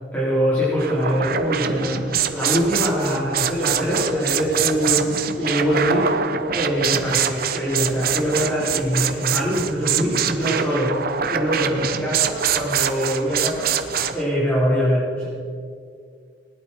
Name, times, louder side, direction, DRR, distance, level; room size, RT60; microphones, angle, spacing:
voice 1, 0.1-5.1 5.4-6.1 6.5-13.7 14.1-15.3, equal, 10° left, -10 dB, 4.5 m, -23 dB
sound 1, 0.8-14.2, right 8 dB, 55° right, 0.8 m, -24 dB
20.0 x 11.0 x 4.7 m, 2.2 s
head